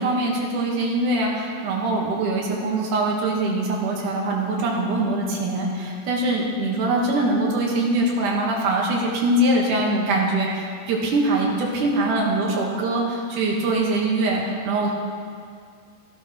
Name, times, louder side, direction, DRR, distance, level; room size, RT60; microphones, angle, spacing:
voice 1, 0.0-15.0, right 2 dB, 70° right, -2 dB, 2.9 m, -23 dB
14.0 x 12.0 x 3.1 m, 2.2 s
omnidirectional pair, 4.0 m